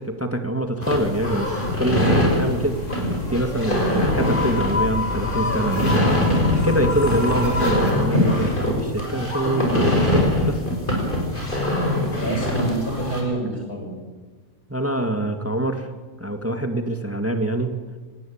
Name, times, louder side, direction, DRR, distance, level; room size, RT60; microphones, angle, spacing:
voice 1, 0.0-2.8 3.3-10.6 14.7-15.9 16.2-17.8, right 1 dB, 10° right, 7 dB, 1.9 m, -25 dB
sound 1, 0.8-13.2, left 1 dB, 35° left, 6.0 m, -23 dB
sound 2, 1.1-7.9, left 1 dB, 55° left, 3.8 m, -28 dB
voice 2, 3.8-4.3 12.2-14.0, right 2 dB, 85° left, 1 dB, 7.7 m, -27 dB
25.0 x 19.0 x 8.7 m, 1.3 s
omnidirectional pair, 1.5 m